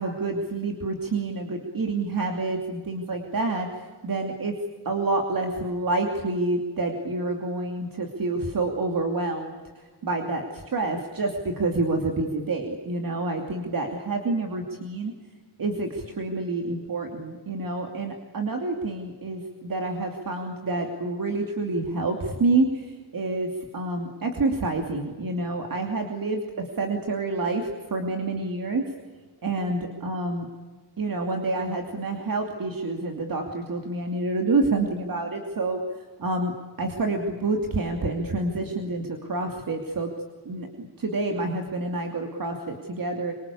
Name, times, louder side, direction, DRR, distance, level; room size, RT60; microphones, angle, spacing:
voice 1, 0.0-3.7 4.0-4.5 4.8-9.6 10.0-15.1 15.6-26.4 26.8-28.8 29.4-30.5 31.0-35.8 36.2-36.5 36.8-40.1 40.4-43.3, right 2 dB, 50° right, 3 dB, 2.8 m, -28 dB
26.0 x 25.0 x 8.5 m, 1.4 s
wide cardioid pair, 155°, 42 cm